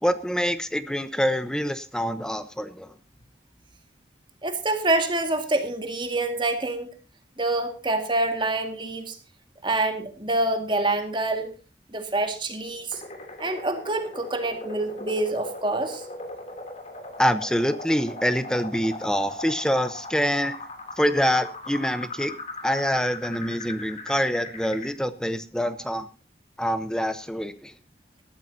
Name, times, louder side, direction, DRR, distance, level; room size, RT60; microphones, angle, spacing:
voice 1, 0.0-2.9 17.2-20.6 21.0-22.3 22.6-26.1 26.6-27.7, equal, 5° left, 11 dB, 0.9 m, -25 dB
voice 2, 4.4-6.9 7.4-9.2 9.6-11.5 11.9-13.0 13.4-16.0, right 2 dB, 25° right, 6 dB, 2.0 m, -26 dB
sound 1, 12.9-24.9, left 2 dB, 40° left, 3.2 m, -39 dB
19.5 x 13.5 x 2.8 m, 0.30 s
head